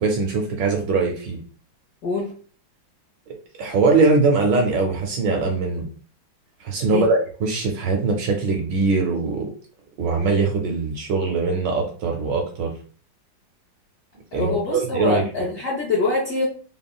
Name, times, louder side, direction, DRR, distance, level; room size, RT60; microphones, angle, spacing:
voice 1, 0.0-1.4 3.3-5.9 6.6-9.5 10.0-12.7 14.3-15.3, right 3 dB, 75° right, 2 dB, 1.1 m, -22 dB
voice 2, 14.3-16.4, left 3 dB, 65° left, -5 dB, 0.7 m, -24 dB
3.5 x 2.0 x 2.2 m, 0.41 s
omnidirectional pair, 2.2 m